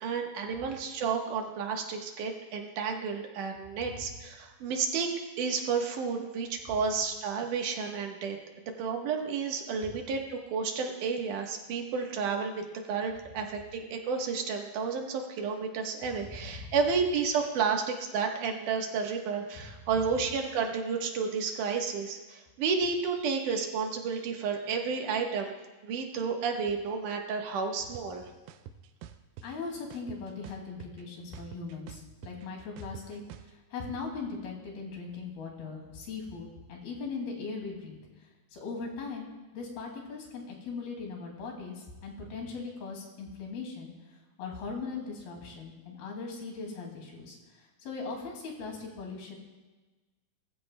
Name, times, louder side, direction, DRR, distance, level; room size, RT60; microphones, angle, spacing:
voice 1, 0.0-5.1 5.4-8.4 8.8-25.5 25.8-28.2, right 5 dB, 65° right, 2 dB, 2.6 m, -31 dB
voice 2, 16.4-16.7 29.4-38.0 38.5-39.3 39.5-43.9 44.4-49.4, left 4 dB, 85° left, 0 dB, 4.2 m, -39 dB
sound 1, 27.9-28.0 28.5-29.5 29.9-31.0 31.3-33.5, right 10 dB, 85° right, 2.6 m, -46 dB
20.0 x 14.5 x 2.2 m, 1.2 s
omnidirectional pair, 4.3 m